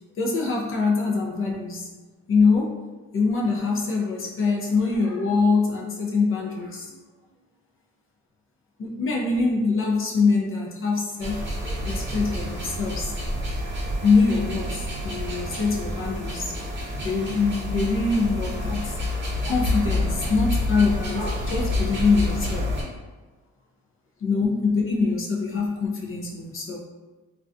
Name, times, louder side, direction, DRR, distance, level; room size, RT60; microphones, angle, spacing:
voice 1, 0.2-1.9 2.3-2.8 3.1-7.0 8.8-11.5 11.9-13.1 14.0-16.5 17.0-18.9 19.4-22.7 24.2-26.8, left 4 dB, 45° left, -1 dB, 0.5 m, -24 dB
sound 1, 11.2-22.8, left 1 dB, 40° right, 0.8 m, -28 dB
2.3 x 2.2 x 2.4 m, 1.2 s
cardioid pair, 90°, 30 cm